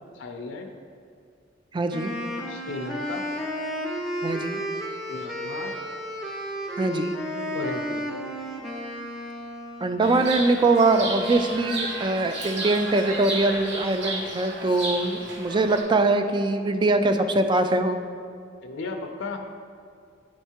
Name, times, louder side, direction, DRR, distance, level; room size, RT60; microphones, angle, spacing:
voice 1, 0.1-0.7 2.5-3.2 5.1-5.7 7.5-8.1 18.6-19.5, left 3 dB, 70° left, 3 dB, 0.5 m, -35 dB
voice 2, 1.7-2.1 4.2-4.6 6.8-7.1 9.8-18.0, right 2 dB, 25° right, 7 dB, 0.3 m, -22 dB
Wind instrument woodwind instrument, 1.9-10.0, equal, ahead, 0.7 m, -32 dB
Chirp tweet, 10.0-15.8, right 2 dB, 65° right, 1.0 m, -33 dB
9.9 x 4.5 x 2.9 m, 2.3 s
head